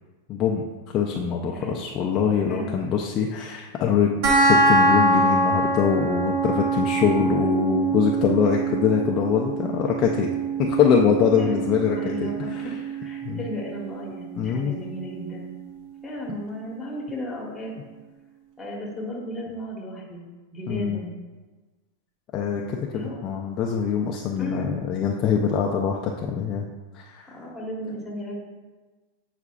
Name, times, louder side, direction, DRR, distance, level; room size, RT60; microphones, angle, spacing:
voice 1, 0.3-0.6 0.9-10.3 10.6-12.3 13.2-13.4 14.4-14.7 20.7-21.0 22.3-22.8 23.2-26.7 26.9-27.3, left 7 dB, 30° left, 0 dB, 0.4 m, -23 dB
voice 2, 2.5-2.8 11.4-12.7 13.0-15.5 16.0-17.7 18.6-20.2 20.5-21.1 22.9-23.2 24.4-24.9 27.3-28.3, equal, 10° left, -3 dB, 1.2 m, -35 dB
sound 1, 4.2-15.2, right 3 dB, 45° right, 0.8 m, -24 dB
8.1 x 4.9 x 2.4 m, 1.3 s
supercardioid pair, 160°, 0 cm